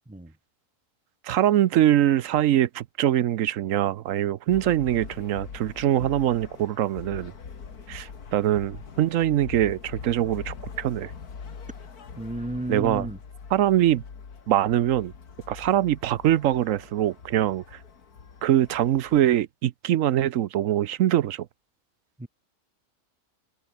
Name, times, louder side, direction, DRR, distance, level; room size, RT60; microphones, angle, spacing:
voice 1, 1.2-7.3 7.9-11.1 12.7-13.1 13.5-14.0 14.5-15.1 15.5-17.6 18.4-21.5, right 12 dB, 65° right, 1.0 m, -23 dB
sound 1, 4.5-19.2, left 6 dB, 80° left, 2.5 m, -43 dB
voice 2, 12.2-13.2 22.2-22.3, right 1 dB, 5° right, 0.7 m, -33 dB
omnidirectional pair, 1.6 m